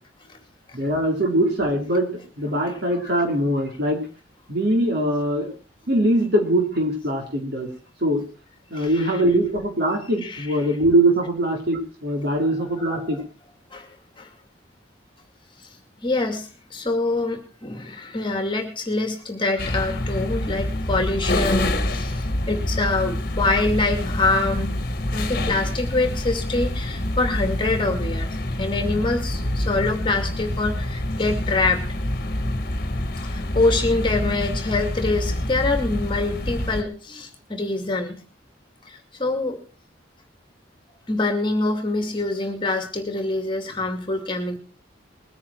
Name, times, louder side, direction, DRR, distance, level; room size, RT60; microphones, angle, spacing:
voice 1, 0.7-2.1 2.4-4.0 4.5-5.5 5.9-7.7 8.0-8.2 8.7-13.2, right 1 dB, 60° right, 1 dB, 4.4 m, -22 dB
voice 2, 8.7-9.2 10.2-10.6 12.3-12.5 12.8-13.1 13.7-13.9 14.2-14.3 16.0-24.8 25.1-28.3 28.6-31.9 33.2-38.2 38.9-39.6 41.1-44.6, left 2 dB, 25° left, 5 dB, 2.5 m, -25 dB
sound 1, 19.6-36.8, left 1 dB, 50° left, 1.6 m, -26 dB
21.0 x 9.7 x 4.6 m, 0.37 s
head